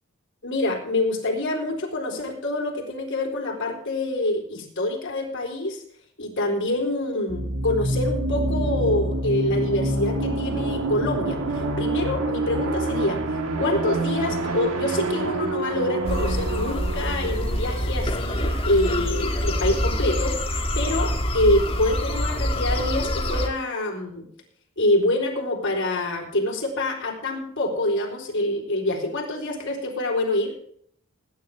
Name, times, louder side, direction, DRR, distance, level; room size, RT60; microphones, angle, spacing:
voice 1, 0.4-5.8 6.2-13.2 13.6-24.2 24.8-30.5, left 1 dB, 60° left, 1 dB, 4.1 m, -26 dB
sound 1, 7.3-18.8, right 2 dB, 80° right, 1.8 m, -27 dB
sound 2, 16.0-23.5, equal, 25° left, 1.7 m, -26 dB
19.5 x 10.0 x 3.6 m, 0.64 s
head